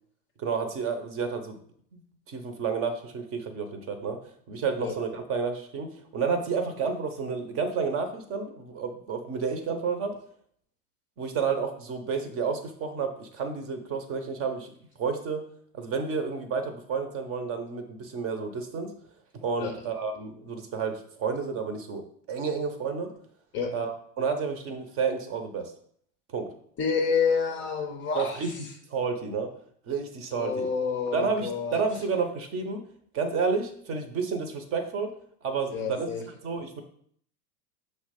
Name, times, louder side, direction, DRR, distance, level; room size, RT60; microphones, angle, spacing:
voice 1, 0.4-1.6 1.9-2.0 2.3-4.2 4.5-10.2 11.2-14.7 15.0-15.5 15.7-18.9 19.4-22.0 22.3-23.1 23.7-25.7 26.3-26.5 28.1-28.5 28.9-29.5 29.9-30.7 31.1-32.8 33.1-35.1 35.4-36.8, right 5 dB, 30° right, 6 dB, 0.8 m, -30 dB
voice 2, 26.8-28.4 30.3-31.8 35.7-36.2, left 5 dB, 25° left, 3 dB, 0.6 m, -28 dB
5.7 x 3.3 x 5.1 m, 0.63 s
supercardioid pair, 135°, 48 cm